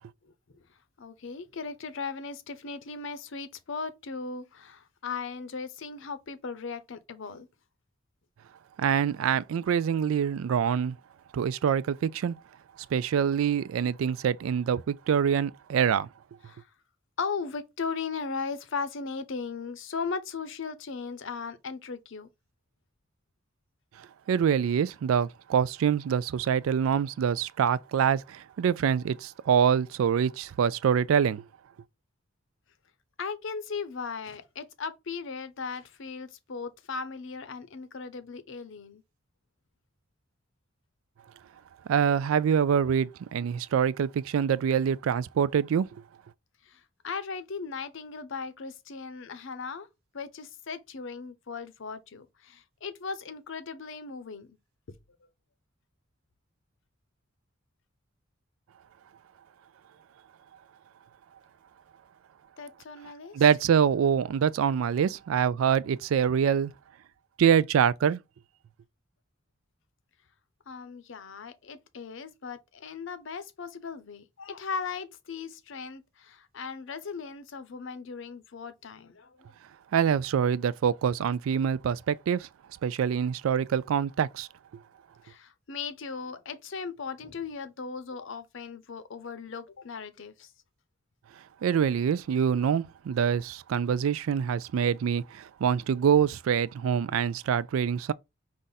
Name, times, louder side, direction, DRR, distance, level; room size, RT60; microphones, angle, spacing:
voice 1, 1.0-7.5 16.5-16.7 17.2-22.3 33.2-39.0 46.6-49.9 50.1-54.5 54.9-55.0 62.6-63.3 70.7-79.5 85.2-90.5, left 5 dB, 65° left, 0.7 m, -37 dB
voice 2, 8.8-11.0 11.3-12.4 12.9-16.1 24.3-31.4 41.9-46.0 63.3-66.7 67.4-68.2 79.9-82.5 82.8-84.5 91.6-98.1, right 7 dB, 80° right, 0.3 m, -25 dB
5.3 x 2.5 x 4.0 m
head